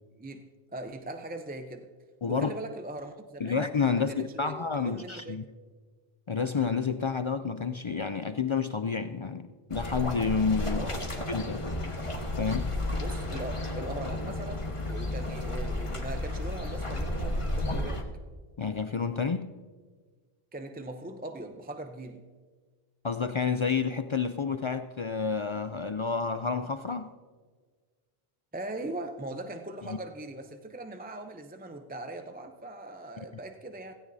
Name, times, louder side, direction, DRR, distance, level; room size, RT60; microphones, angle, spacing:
voice 1, 0.2-1.9 2.3-3.7 3.9-5.4 10.8-11.1 13.0-18.0 20.5-22.3 28.5-33.9, right 2 dB, 10° right, 0.5 m, -40 dB
voice 2, 2.2-2.5 3.4-5.4 6.3-11.0 11.3-11.7 12.4-12.7 18.6-19.5 23.0-27.1 29.9-30.0, left 5 dB, 55° left, 0.3 m, -29 dB
sound 1, 9.7-18.0, left 1 dB, 30° left, 1.3 m, -32 dB
17.0 x 16.0 x 2.7 m
omnidirectional pair, 1.1 m